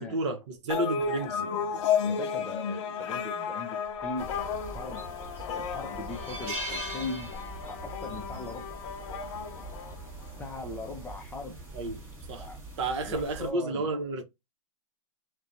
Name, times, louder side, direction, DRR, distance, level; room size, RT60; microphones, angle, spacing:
voice 1, 0.0-1.4 11.7-12.0 12.3-12.5 12.8-14.2, right 2 dB, 55° right, 0.9 m, -31 dB
sound 1, 0.7-10.5, left 7 dB, 55° left, 0.6 m, -33 dB
voice 2, 1.3-4.3 4.7-5.1 5.5-7.3 7.7-8.8 10.4-11.6 12.4-12.6 13.0-13.9, left 2 dB, 10° left, 0.5 m, -40 dB
sound 2, 4.2-13.5, right 2 dB, 10° right, 1.1 m, -44 dB
sound 3, 4.9-5.2 5.6-5.7 6.1-7.9 8.2-8.4 9.7-10.0, right 1 dB, 30° right, 1.4 m, -38 dB
2.6 x 2.2 x 2.3 m
hypercardioid pair, 140°, 18 cm